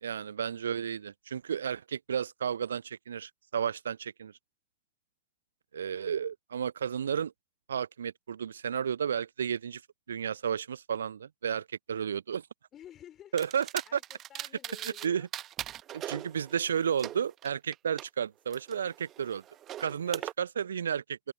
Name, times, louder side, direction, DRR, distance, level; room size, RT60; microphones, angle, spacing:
voice 1, 0.0-4.3 5.7-7.3 7.7-9.8 10.1-12.4 13.3-13.7 13.9-14.0 14.8-15.3 15.9-19.4 19.8-21.3, right 8 dB, 70° right, 0.6 m, -32 dB
voice 2, 12.7-13.5 13.8-15.3 15.9-16.0 20.0-20.3, left 10 dB, 30° left, 3.6 m, -52 dB
sound 1, 13.4-15.1 15.3-18.1 18.5-20.3, right 12 dB, 30° right, 1.0 m, -41 dB
open air
figure-of-eight pair, 90°, 0 cm